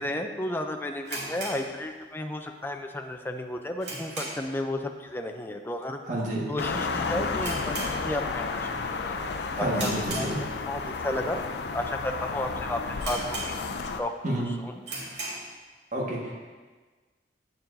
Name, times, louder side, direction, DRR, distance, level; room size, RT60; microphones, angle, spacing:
voice 1, 0.0-6.0 6.5-8.7 9.1-9.2 9.6-11.4 11.7-13.6 14.0-14.7, left 1 dB, 10° left, 4 dB, 0.4 m, -33 dB
sound 1, 1.0-2.4 2.7-2.8 3.3-4.6 4.9-5.2 5.5-5.6 6.3-6.6 6.8-6.9 7.3-8.5 8.9-9.2 9.7-10.8 11.4-11.5 12.1-12.2 12.4-12.5 13.0-13.9 14.3-14.4 14.8-15.5, right 2 dB, 70° right, 2.0 m, -37 dB
voice 2, 6.0-6.4 9.5-10.4 14.2-14.5 15.9-16.4, right 1 dB, 45° right, -4 dB, 1.5 m, -29 dB
sound 2, 6.6-14.0, left 4 dB, 70° left, 0.4 m, -32 dB
8.7 x 7.0 x 2.6 m, 1.4 s
head